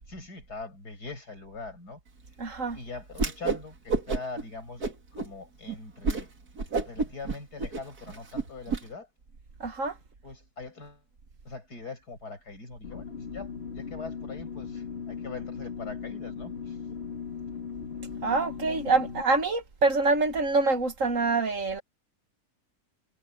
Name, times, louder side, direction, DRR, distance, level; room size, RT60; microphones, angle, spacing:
voice 1, 0.1-2.0 2.7-4.8 5.1-6.3 6.8-9.1 10.2-11.0 11.4-16.8 17.9-18.1, left 4 dB, 80° left, 6.6 m, -42 dB
voice 2, 2.4-2.8 9.6-10.0 18.2-21.8, right 3 dB, 55° right, 1.9 m, -25 dB
Whoosh swoosh swish, 3.1-3.6 3.9-4.4 4.8-5.3 5.7-5.8 6.0-6.2 6.6-8.8, right 4 dB, 70° right, 3.0 m, -29 dB
sound 1, 12.8-19.2, left 6 dB, 40° left, 1.8 m, -38 dB
omnidirectional pair, 1.7 m